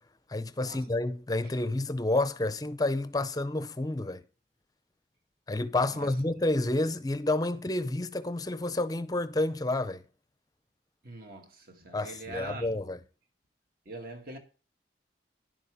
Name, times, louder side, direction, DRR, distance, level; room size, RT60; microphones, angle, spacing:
voice 1, 0.3-4.2 5.5-10.0 11.9-13.0, left 2 dB, 20° left, 0.6 m, -29 dB
voice 2, 11.0-12.8 13.9-14.4, right 2 dB, 50° right, 2.0 m, -43 dB
11.0 x 7.0 x 4.9 m
head